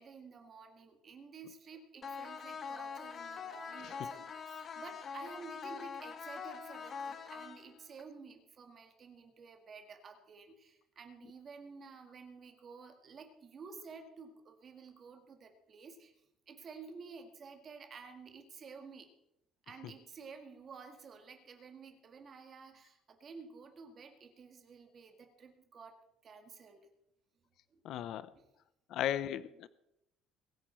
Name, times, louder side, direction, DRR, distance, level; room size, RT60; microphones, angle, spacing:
voice 1, 0.0-16.1 16.5-19.1 19.7-26.0 26.2-26.9 27.7-27.8 28.2-28.4, right 5 dB, 30° right, 5 dB, 1.8 m, -52 dB
sound 1, 2.0-8.0, left 5 dB, 25° left, 0.9 m, -44 dB
voice 2, 27.8-28.3 28.9-29.7, left 11 dB, 50° left, 16 dB, 0.6 m, -36 dB
22.0 x 9.4 x 4.4 m, 0.82 s
cardioid pair, 180°, 0 cm